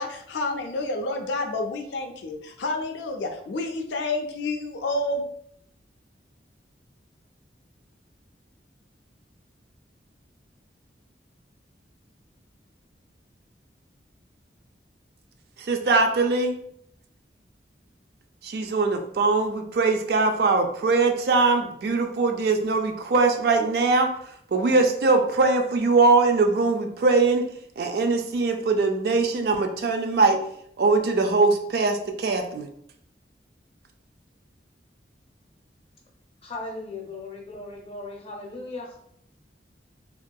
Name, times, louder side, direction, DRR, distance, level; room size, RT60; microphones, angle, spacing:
voice 1, 0.0-5.3, left 2 dB, 80° left, 4 dB, 0.4 m, -29 dB
voice 2, 15.6-16.6 18.4-24.1 24.5-27.4 27.8-30.4 30.8-32.7, right 3 dB, 60° right, 5 dB, 0.3 m, -21 dB
voice 3, 36.4-39.0, left 2 dB, 30° left, -1 dB, 0.5 m, -37 dB
2.6 x 2.3 x 2.2 m, 0.69 s
head